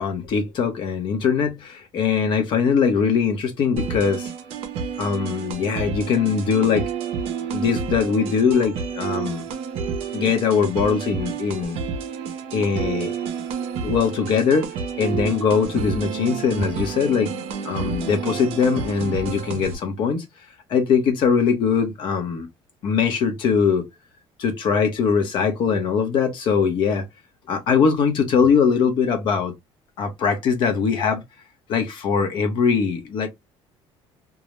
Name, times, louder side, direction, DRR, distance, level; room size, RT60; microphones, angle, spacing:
voice 1, 0.0-4.3 5.0-6.9 7.5-9.4 10.1-11.8 12.5-13.1 13.6-14.7 15.0-17.3 17.6-20.2 20.7-22.5 22.8-23.9 24.4-27.1 27.5-29.5 30.0-31.2 31.7-33.3, left 6 dB, 45° left, 0.7 m, -21 dB
sound 1, 3.8-19.8, right 6 dB, 60° right, 0.5 m, -30 dB
2.3 x 2.0 x 2.9 m
cardioid pair, 170°, 11 cm